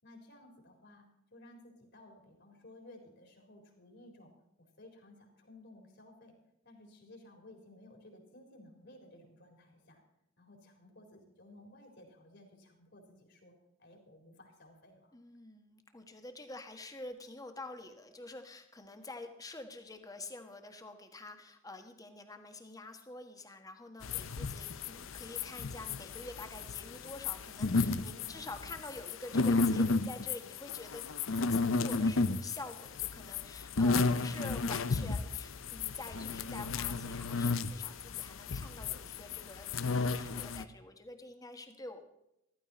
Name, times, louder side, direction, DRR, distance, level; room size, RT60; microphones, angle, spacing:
voice 1, 0.0-4.3 4.8-6.4 6.6-10.0 10.4-13.5 13.8-15.1 28.1-28.5, left 1 dB, 55° left, 3 dB, 4.2 m, -56 dB
voice 2, 15.1-42.0, left 2 dB, 15° left, 6 dB, 1.5 m, -47 dB
sound 1, 24.0-40.6, left 3 dB, 70° left, 0.7 m, -33 dB
14.5 x 14.0 x 4.3 m, 0.86 s
head